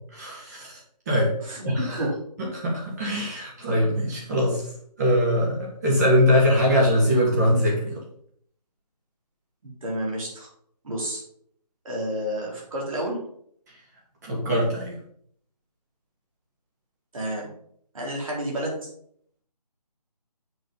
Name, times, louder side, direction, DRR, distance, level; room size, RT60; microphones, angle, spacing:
voice 1, 0.1-0.8 1.1-1.3 1.6-1.8 2.5-4.6 5.0-8.0 14.2-14.9, equal, 25° right, -3 dB, 2.1 m, -22 dB
voice 2, 1.4-2.2 7.7-7.8 9.6-10.5 10.8-11.2 11.8-13.2 17.1-17.5 17.9-18.9, equal, 55° right, -2 dB, 4.0 m, -30 dB
7.5 x 5.2 x 5.4 m, 0.65 s
figure-of-eight pair, 165°, 21 cm